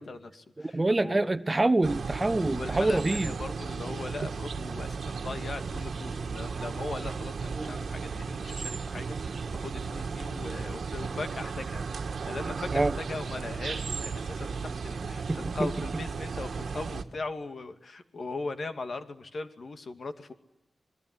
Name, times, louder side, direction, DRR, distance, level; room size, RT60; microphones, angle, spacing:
voice 1, 0.0-1.3 2.5-11.9 12.2-20.3, left 3 dB, 60° left, 8 dB, 2.3 m, -39 dB
voice 2, 0.6-3.3 7.6-7.7 12.7-12.9 15.3-15.7, right 2 dB, 25° right, 13 dB, 1.1 m, -26 dB
sound 1, 1.8-17.0, right 5 dB, 75° right, 1.7 m, -35 dB
26.5 x 21.5 x 9.7 m, 0.88 s
wide cardioid pair, 75°, 0 cm